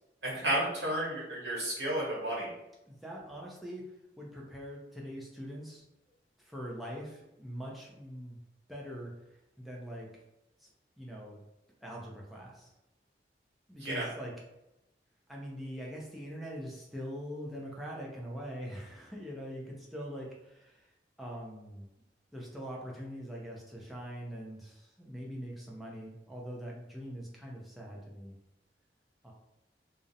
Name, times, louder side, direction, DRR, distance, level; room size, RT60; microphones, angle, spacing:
voice 1, 0.2-2.5 13.8-14.0, right 1 dB, 75° right, -5 dB, 1.1 m, -32 dB
voice 2, 2.9-3.8 4.2-5.8 6.4-8.4 8.7-9.1 9.6-10.1 11.0-11.4 11.8-12.7 13.7-14.3 15.3-20.8 21.2-21.9 22.3-28.4 29.2-29.3, equal, ahead, -4 dB, 0.4 m, -43 dB
2.4 x 2.0 x 2.7 m, 0.90 s
head